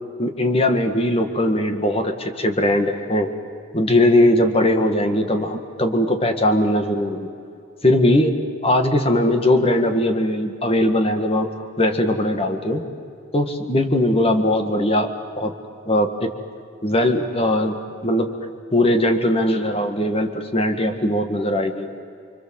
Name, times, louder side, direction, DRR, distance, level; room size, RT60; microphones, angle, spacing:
voice 1, 0.2-3.3 3.7-7.3 7.8-8.4 8.6-11.5 11.8-12.8 13.3-15.1 15.4-15.5 15.9-16.3 16.8-17.8 18.0-18.3 18.7-21.9, left 1 dB, 30° left, 6 dB, 2.0 m, -20 dB
30.0 x 23.5 x 7.8 m, 2.4 s
head